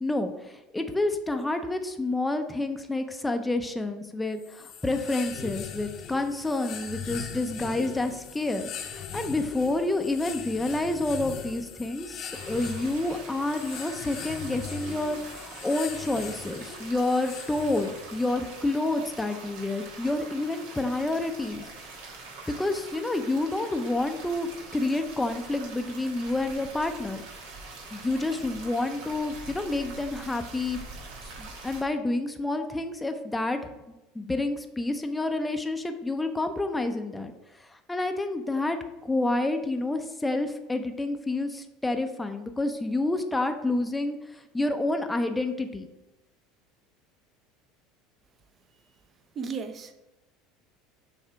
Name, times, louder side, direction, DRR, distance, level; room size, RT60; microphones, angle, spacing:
voice 1, 0.0-21.7 22.6-27.2 27.9-30.8 31.4-33.7 34.1-37.3 37.6-45.9, left 2 dB, 10° left, 6 dB, 0.5 m, -29 dB
sound 1, 4.4-18.2, left 7 dB, 50° left, 0.8 m, -40 dB
sound 2, 12.3-31.8, right 3 dB, 80° right, 1.3 m, -44 dB
voice 2, 49.3-49.9, right 5 dB, 35° right, 9 dB, 0.6 m, -34 dB
6.5 x 3.2 x 4.6 m, 0.99 s
supercardioid pair, 105°, 0 cm